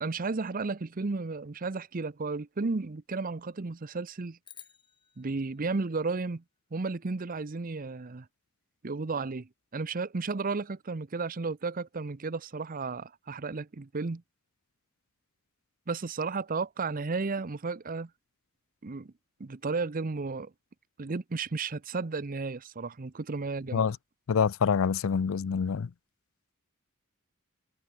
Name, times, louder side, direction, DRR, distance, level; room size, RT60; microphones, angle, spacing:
voice 1, 0.0-4.4 5.2-6.4 6.7-8.3 8.8-14.2 15.9-18.1 18.8-19.1 19.4-20.5 21.0-23.8, right 4 dB, 40° right, 0.7 m, -33 dB
sound 1, 4.4-6.9, left 8 dB, 25° left, 6.2 m, -55 dB
voice 2, 24.3-25.9, left 6 dB, 65° left, 0.4 m, -26 dB
head